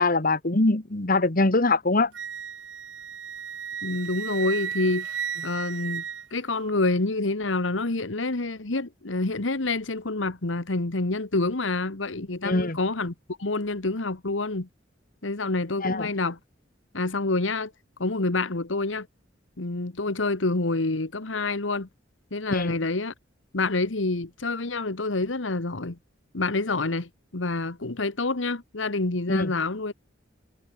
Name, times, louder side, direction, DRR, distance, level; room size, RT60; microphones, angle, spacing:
voice 1, 0.0-2.1 12.4-12.8 15.8-16.1 22.5-22.8 29.3-29.5, left 2 dB, 50° left, 1.7 m, -23 dB
Wind instrument woodwind instrument, 2.1-6.7, right 8 dB, 65° right, 1.5 m, -34 dB
voice 2, 3.8-5.1 5.4-6.0 6.3-13.1 13.4-14.7 15.2-16.4 16.9-17.7 18.0-19.1 19.6-21.9 22.3-23.1 23.5-26.0 26.3-29.9, left 2 dB, 80° left, 1.5 m, -27 dB
head